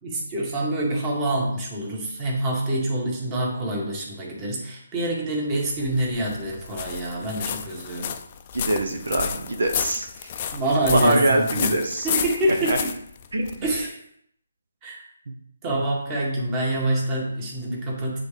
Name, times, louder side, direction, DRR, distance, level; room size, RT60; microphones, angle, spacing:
voice 1, 0.0-8.1 10.5-11.7 12.0-12.9 13.6-14.0 14.8-15.0 15.6-18.2, right 1 dB, 25° right, -2 dB, 1.8 m, -26 dB
sound 1, 5.7-13.9, left 8 dB, 35° left, 0.5 m, -32 dB
voice 2, 8.5-10.3 10.9-12.1 12.7-12.8 13.3-13.6 15.3-15.4, right 1 dB, 70° right, 4 dB, 0.9 m, -24 dB
8.2 x 3.8 x 3.4 m, 0.71 s
figure-of-eight pair, 150°, 0 cm